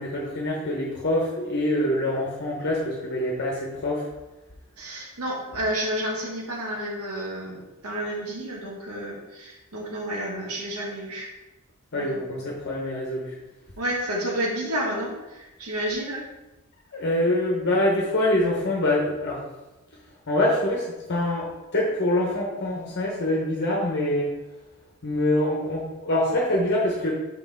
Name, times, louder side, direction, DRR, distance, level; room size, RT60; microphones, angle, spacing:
voice 1, 0.0-4.1 11.9-13.3 16.9-19.4 20.3-24.3 25.0-27.1, left 1 dB, 55° left, -3 dB, 1.1 m, -25 dB
voice 2, 4.8-11.3 11.9-12.2 13.8-16.3, right 1 dB, 80° right, -2 dB, 1.6 m, -30 dB
6.1 x 4.8 x 3.6 m, 1.0 s
head